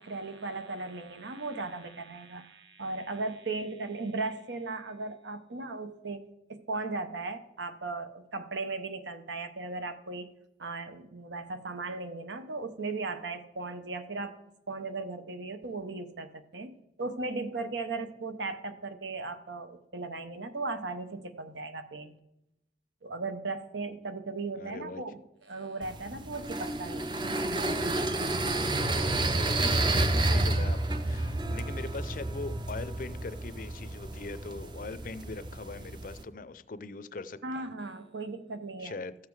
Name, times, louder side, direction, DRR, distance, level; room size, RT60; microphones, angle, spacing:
voice 1, 0.0-6.2 6.5-10.3 10.6-14.3 14.7-22.1 23.0-27.2 37.4-39.0, right 3 dB, 85° right, 9 dB, 0.9 m, -37 dB
voice 2, 24.6-25.0 29.5-37.7 38.8-39.1, left 3 dB, 50° left, 14 dB, 0.5 m, -41 dB
sound 1, 25.8-36.2, right 2 dB, 25° right, 0.5 m, -30 dB
sound 2, 28.3-34.6, equal, 50° right, 2.3 m, -53 dB
13.5 x 7.4 x 4.7 m, 0.87 s
head